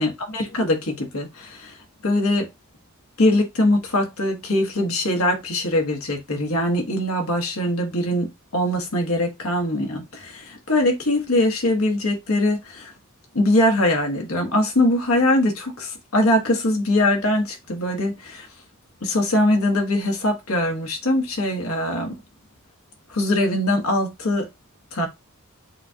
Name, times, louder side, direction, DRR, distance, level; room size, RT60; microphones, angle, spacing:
voice 1, 0.0-1.8 2.0-2.5 3.2-12.9 13.3-18.5 19.0-22.2 23.1-24.5 24.9-25.1, left 1 dB, 80° left, 1.5 m, -22 dB
7.2 x 2.4 x 2.8 m
head